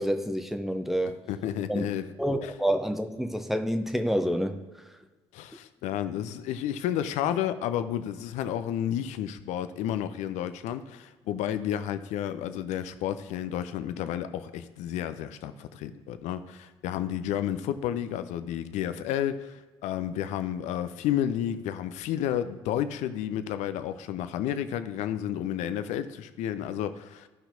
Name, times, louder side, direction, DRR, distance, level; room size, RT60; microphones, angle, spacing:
voice 1, 0.0-1.2 1.7-1.8 2.2-4.6, equal, ahead, 7 dB, 0.7 m, -28 dB
voice 2, 1.3-2.1 2.4-2.5 5.3-27.3, left 10 dB, 55° left, 11 dB, 0.5 m, -31 dB
13.5 x 5.8 x 2.7 m, 1.3 s
figure-of-eight pair, 50°, 14 cm